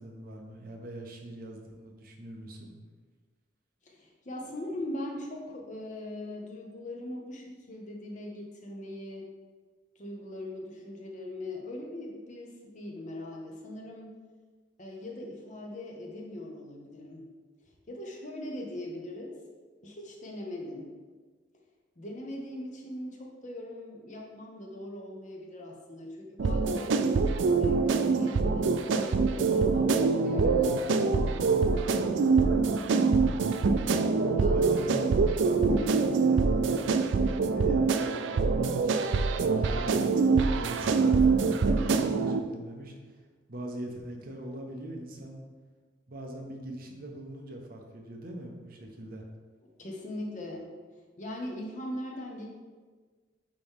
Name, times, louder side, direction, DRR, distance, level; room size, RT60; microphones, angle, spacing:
voice 1, 0.0-2.8 34.5-35.0 35.4-39.0 39.6-43.2 43.5-45.4 46.1-49.2, right 1 dB, 45° right, 1 dB, 0.8 m, -41 dB
voice 2, 3.8-9.3 10.0-14.2 14.8-17.3 17.9-19.4 19.8-20.9 22.0-27.0 27.6-32.5 34.4-34.7 49.6-50.7 51.2-52.5, left 1 dB, 40° left, 0 dB, 0.8 m, -40 dB
sound 1, 26.4-42.4, right 4 dB, 65° right, 0.3 m, -25 dB
8.9 x 3.0 x 3.6 m, 1.4 s
head